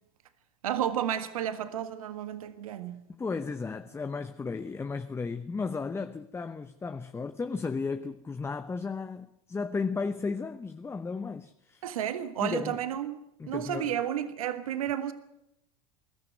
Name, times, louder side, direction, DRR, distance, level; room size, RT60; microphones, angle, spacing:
voice 1, 0.6-3.1 11.8-13.2 13.4-15.1, right 10 dB, 80° right, 1.6 m, -32 dB
voice 2, 3.2-11.8 12.4-12.8 13.4-13.9, left 4 dB, 15° left, 0.8 m, -34 dB
21.5 x 13.5 x 9.2 m
hypercardioid pair, 90°, 18 cm